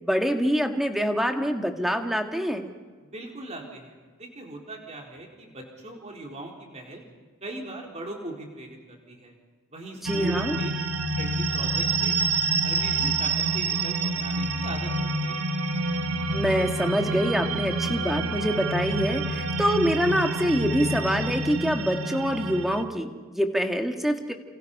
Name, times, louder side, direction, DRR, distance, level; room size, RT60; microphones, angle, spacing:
voice 1, 0.0-2.7 10.0-10.6 16.3-24.3, equal, ahead, 4 dB, 1.7 m, -25 dB
voice 2, 3.0-7.0 7.4-9.3 9.7-10.7 11.2-12.2 12.6-15.5, right 1 dB, 30° right, 0 dB, 4.3 m, -39 dB
sound 1, 10.0-22.8, right 3 dB, 90° right, 1.6 m, -27 dB
29.0 x 28.0 x 5.6 m, 1.5 s
head